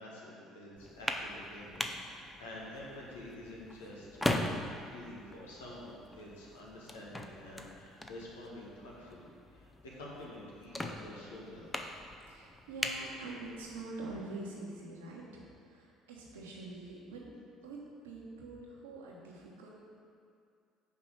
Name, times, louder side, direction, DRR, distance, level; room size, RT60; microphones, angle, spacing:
voice 1, 0.0-4.4 4.8-11.7, left 1 dB, 80° left, -4 dB, 1.4 m, -48 dB
sound 1, 0.8-13.9, left 1 dB, 15° left, 0.6 m, -41 dB
voice 2, 12.3-15.4 15.7-17.3 17.6-17.8 18.0-19.7, right 2 dB, 80° right, -3 dB, 1.2 m, -45 dB
5.4 x 4.8 x 6.4 m, 2.4 s
hypercardioid pair, 60°, 0 cm